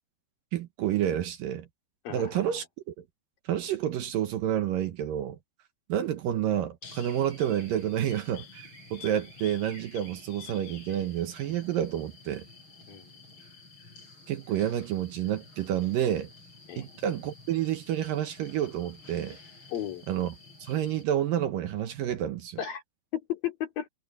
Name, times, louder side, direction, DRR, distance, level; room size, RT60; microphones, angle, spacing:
voice 1, 0.5-1.7 2.1-2.7 3.0-3.1 3.5-5.4 5.9-8.6 8.9-12.4 14.3-16.3 16.8-19.4 20.1-20.3 20.6-22.6, right 11 dB, 70° right, 2.5 m, -29 dB
voice 2, 2.0-2.4 12.9-13.0 16.7-16.9 19.7-20.0 22.6-22.8 23.1-23.9, left 10 dB, 60° left, 4.4 m, -34 dB
sound 1, 6.8-21.0, left 4 dB, 30° left, 6.8 m, -50 dB
omnidirectional pair, 4.5 m